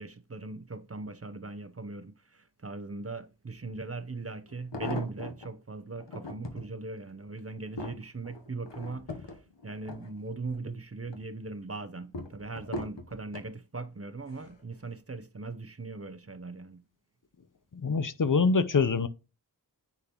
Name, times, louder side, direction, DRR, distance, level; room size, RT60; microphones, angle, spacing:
voice 1, 0.0-16.8, right 3 dB, 35° right, 0.7 m, -40 dB
sound 1, 3.7-3.8 4.5-5.5 6.0-6.7 7.2-10.6 11.0-11.5 12.1-13.5 14.3-14.6 14.9-15.0, left 2 dB, 90° left, 1.1 m, -40 dB
voice 2, 17.7-19.1, left 4 dB, 50° left, 0.6 m, -25 dB
9.8 x 3.9 x 3.0 m
wide cardioid pair, 45°, 42 cm